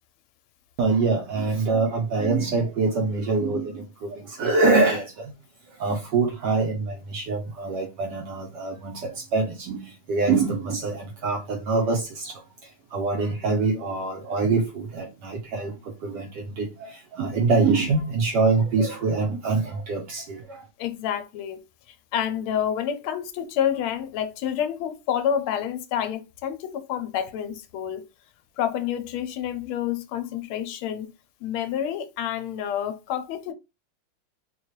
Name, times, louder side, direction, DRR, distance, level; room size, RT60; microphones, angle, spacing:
voice 1, 0.8-5.3 5.7-20.7, right 3 dB, 70° right, 1.0 m, -25 dB
voice 2, 20.8-28.1 28.6-31.1 31.4-33.5, left 9 dB, 80° left, 1.4 m, -28 dB
4.1 x 2.3 x 3.0 m
omnidirectional pair, 2.4 m